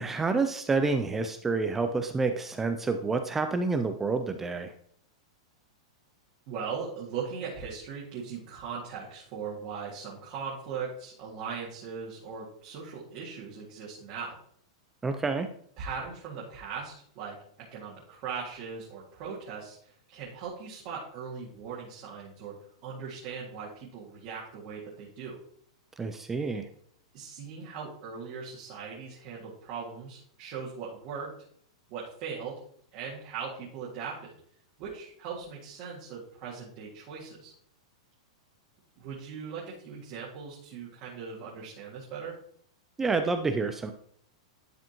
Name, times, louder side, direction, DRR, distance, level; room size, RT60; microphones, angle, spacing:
voice 1, 0.0-4.7 15.0-15.5 26.0-26.7 43.0-43.9, right 4 dB, 10° right, 7 dB, 0.3 m, -28 dB
voice 2, 6.5-14.4 15.8-22.6 22.8-25.4 27.1-31.3 31.9-32.6 32.9-34.4 34.8-37.5 39.0-42.4, right 6 dB, 35° right, -7 dB, 2.0 m, -39 dB
11.0 x 5.0 x 2.9 m, 0.63 s
supercardioid pair, 165°, 3 cm